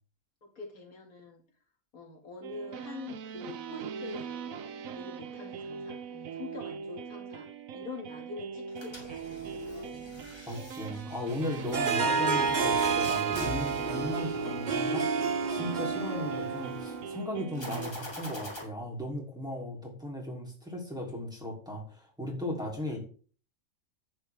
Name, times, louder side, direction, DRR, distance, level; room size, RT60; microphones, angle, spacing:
voice 1, 0.4-1.4 1.9-7.5 7.7-9.8, left 3 dB, 80° left, 1 dB, 2.6 m, -45 dB
sound 1, 2.4-17.9, right 6 dB, 75° right, 1.1 m, -41 dB
sound 2, 8.7-14.9 17.5-18.6, left 2 dB, 20° left, 2.7 m, -44 dB
voice 2, 10.5-15.0 15.5-23.0, left 1 dB, 5° right, -3 dB, 3.2 m, -36 dB
Harp, 11.7-17.2, right 5 dB, 40° right, 0.7 m, -29 dB
11.0 x 8.4 x 3.5 m, 0.42 s
omnidirectional pair, 1.5 m